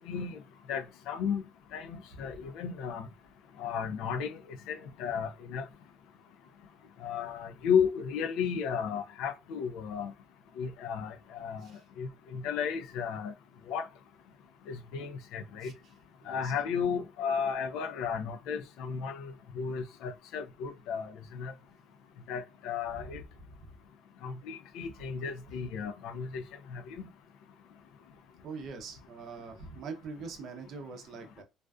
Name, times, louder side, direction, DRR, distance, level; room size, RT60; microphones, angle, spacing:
voice 1, 0.1-0.4 0.7-1.4 1.7-3.1 3.6-4.4 4.7-5.6 7.0-10.1 10.6-11.7 12.0-13.3 13.7-13.9 14.7-15.7 16.3-21.5 22.3-23.2 24.2-26.4 26.7-27.1, left 7 dB, 75° left, 0.4 m, -34 dB
voice 2, 15.6-15.9 16.2-16.5 23.0-23.2 23.5-23.7 28.4-31.4, right 4 dB, 50° right, 0.6 m, -43 dB
2.4 x 2.3 x 2.2 m
cardioid pair, 150°, 0 cm